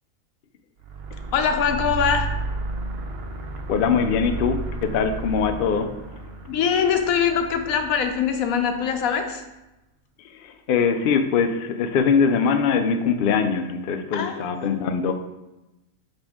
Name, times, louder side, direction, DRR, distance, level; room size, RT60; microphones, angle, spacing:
sound 1, 0.8-9.1, right 3 dB, 55° right, 0.8 m, -33 dB
voice 1, 1.3-2.3 6.5-9.4 14.1-14.8, left 7 dB, 85° left, 6 dB, 1.1 m, -23 dB
voice 2, 3.7-5.9 10.3-15.1, left 6 dB, 65° left, 7 dB, 0.5 m, -22 dB
5.2 x 5.1 x 3.6 m, 0.98 s
omnidirectional pair, 1.4 m